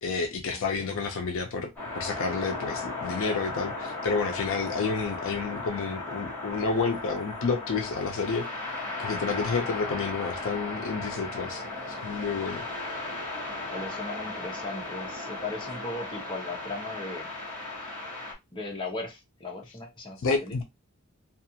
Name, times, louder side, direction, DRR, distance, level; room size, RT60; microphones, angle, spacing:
voice 1, 0.0-1.7 2.0-8.5 9.0-12.6 20.2-20.6, left 4 dB, 65° left, 0.5 m, -30 dB
sound 1, 1.8-18.3, left 2 dB, 5° left, 1.2 m, -36 dB
voice 2, 13.7-17.3 18.5-20.6, left 2 dB, 20° left, 0.8 m, -37 dB
2.4 x 2.4 x 2.8 m
head